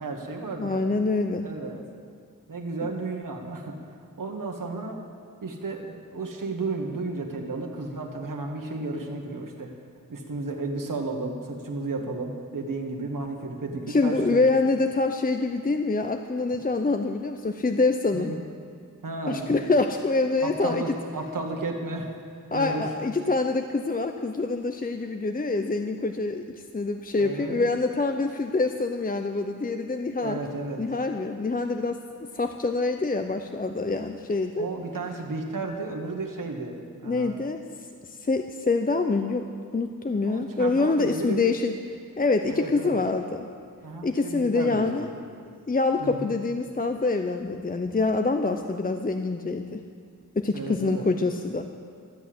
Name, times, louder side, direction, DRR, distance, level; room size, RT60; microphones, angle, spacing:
voice 1, 0.0-0.9 1.4-1.8 2.5-3.8 4.2-5.0 5.4-9.7 10.1-14.4 18.1-18.4 19.0-19.6 20.4-22.1 22.5-22.9 27.2-27.7 30.2-30.8 34.5-36.8 37.0-37.4 40.2-41.5 42.5-43.0 43.8-44.9 46.0-46.3 50.5-51.1, right 3 dB, 70° right, 1 dB, 1.5 m, -33 dB
voice 2, 0.6-1.4 13.9-18.3 19.3-20.8 22.5-26.4 26.7-30.4 30.8-32.0 32.3-34.7 37.0-37.6 38.2-39.4 39.7-41.7 42.2-43.5 44.0-45.1 45.7-49.8 50.4-51.6, left 3 dB, 25° left, 6 dB, 0.6 m, -25 dB
13.0 x 8.2 x 7.7 m, 2.2 s
wide cardioid pair, 55°, 33 cm